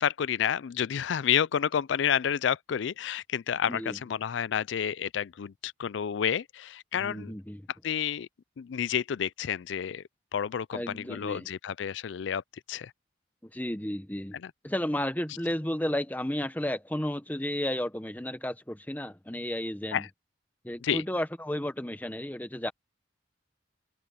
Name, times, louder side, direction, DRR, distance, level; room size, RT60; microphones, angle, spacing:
voice 1, 0.0-7.3 7.8-8.3 8.6-10.0 10.3-12.4 12.7-12.9 14.4-14.5 19.9-20.1 20.8-21.0, left 8 dB, 75° left, 0.4 m, -30 dB
voice 2, 3.7-4.0 6.9-7.7 10.7-11.5 13.4-14.4 14.6-20.1 20.6-22.7, left 1 dB, 10° left, 1.0 m, -33 dB
head